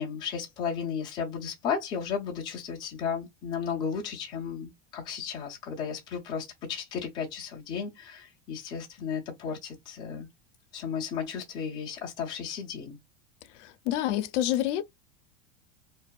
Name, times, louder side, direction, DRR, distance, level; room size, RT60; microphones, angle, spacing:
voice 1, 0.0-10.3 10.7-13.0, left 6 dB, 15° left, 0.3 m, -34 dB
voice 2, 13.6-14.8, left 13 dB, 80° left, 0.5 m, -28 dB
2.6 x 2.2 x 2.2 m
supercardioid pair, 175°, 35 cm